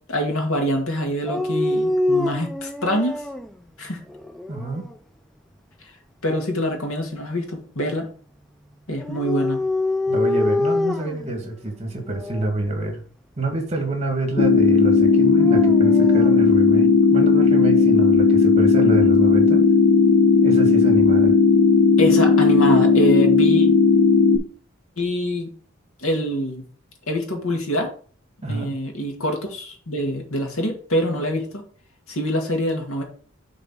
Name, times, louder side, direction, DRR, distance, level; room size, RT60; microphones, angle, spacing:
voice 1, 0.1-3.2 3.8-4.0 6.2-8.1 8.9-9.6 22.0-23.7 25.0-25.5 26.0-26.6 27.1-27.9 28.5-31.6 32.1-33.0, equal, 85° left, 3 dB, 2.2 m, -25 dB
Dog, 1.3-3.5 4.1-4.9 9.0-11.3 12.1-12.5 15.1-16.4, left 2 dB, ahead, 0.3 m, -25 dB
voice 2, 4.5-4.8 10.1-13.0 13.4-19.7 20.4-21.3 28.4-28.7, right 2 dB, 30° right, 3 dB, 2.0 m, -27 dB
sound 1, 14.4-24.4, left 4 dB, 55° left, 1.0 m, -15 dB
6.9 x 4.0 x 6.2 m, 0.42 s
head